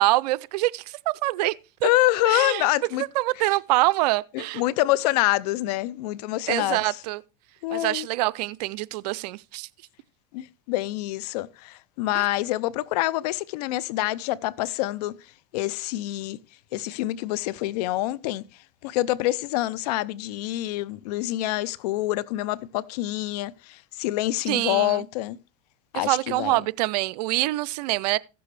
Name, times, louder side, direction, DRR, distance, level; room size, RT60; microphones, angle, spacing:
voice 1, 0.0-1.5 1.8-1.9 2.3-2.7 3.1-4.6 6.5-7.2 7.7-9.7 12.1-12.3 24.5-25.0 25.9-28.2, right 19 dB, 75° right, 0.5 m, -25 dB
voice 2, 1.8-3.0 3.4-3.5 4.3-6.8 7.6-8.1 10.3-15.1 15.5-16.4 16.7-18.4 18.8-25.4 25.9-26.6, left 16 dB, 75° left, 0.6 m, -26 dB
15.5 x 6.9 x 3.2 m
supercardioid pair, 105°, 21 cm